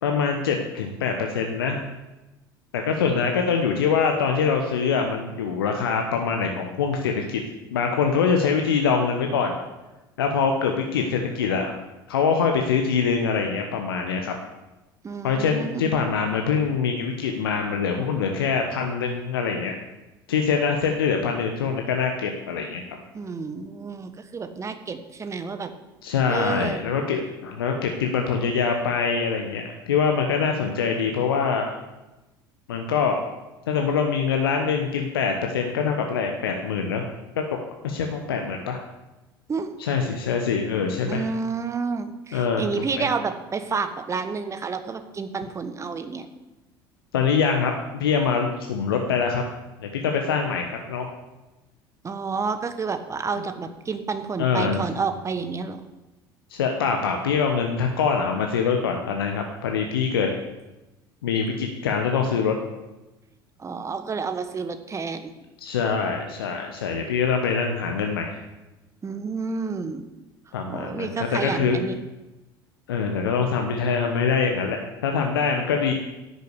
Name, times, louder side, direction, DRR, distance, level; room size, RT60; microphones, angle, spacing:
voice 1, 0.0-1.8 2.7-7.4 7.7-9.6 10.2-11.7 12.1-14.3 15.2-19.7 20.3-23.0 26.0-31.8 32.7-33.2 33.7-37.1 37.4-37.5 37.8-38.8 39.8-41.2 42.3-43.1 47.1-49.4 49.8-51.1 54.4-54.8 56.5-60.3 61.2-62.5 65.6-68.3 70.5-71.8 72.9-75.9, left 6 dB, 70° left, 3 dB, 1.1 m, -24 dB
voice 2, 15.0-16.0 23.1-25.7 26.3-26.8 39.5-39.7 41.1-46.3 52.0-55.8 63.6-65.3 69.0-70.0 70.7-72.0, right 5 dB, 25° right, 9 dB, 1.3 m, -30 dB
11.0 x 6.8 x 8.3 m, 1.0 s
figure-of-eight pair, 65°, 12 cm